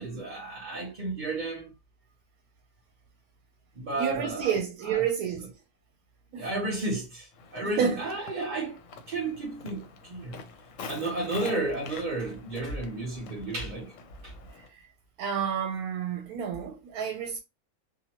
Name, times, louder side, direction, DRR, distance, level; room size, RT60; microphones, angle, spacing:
voice 1, 0.0-1.7 3.8-4.5 4.8-5.1 5.4-5.5 6.3-8.8 9.1-10.4 10.8-13.9 14.2-14.3, right 2 dB, 40° right, 0.8 m, -33 dB
voice 2, 4.0-5.5 6.3-6.5 7.6-8.0 8.4-8.5 14.6-14.9 15.2-17.4, right 7 dB, 80° right, 1.0 m, -30 dB
Walk footsteps, 7.3-14.7, left 4 dB, 70° left, 0.9 m, -46 dB
2.8 x 2.5 x 2.8 m
omnidirectional pair, 1.5 m